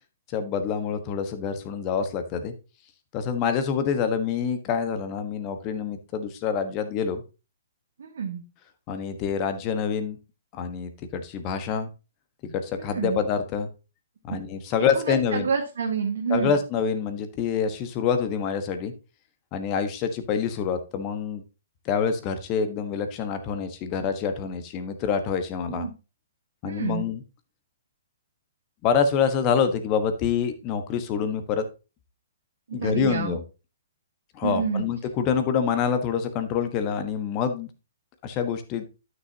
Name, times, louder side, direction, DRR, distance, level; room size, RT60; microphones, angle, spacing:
voice 1, 0.3-2.5 3.1-7.2 8.9-10.2 10.5-11.9 12.4-13.7 14.2-15.5 16.3-18.9 19.5-21.4 21.8-25.9 26.6-27.2 28.8-31.7 32.7-33.4 34.3-37.7 38.2-38.8, left 6 dB, 30° left, 9 dB, 1.2 m, -26 dB
voice 2, 8.0-8.4 12.7-13.2 14.3-14.4 14.9-16.6 25.7-25.9 26.6-27.1 32.7-33.4 34.4-34.8, right 6 dB, 65° right, 1 dB, 1.4 m, -28 dB
12.0 x 6.3 x 2.8 m, 0.30 s
figure-of-eight pair, 120°, 0 cm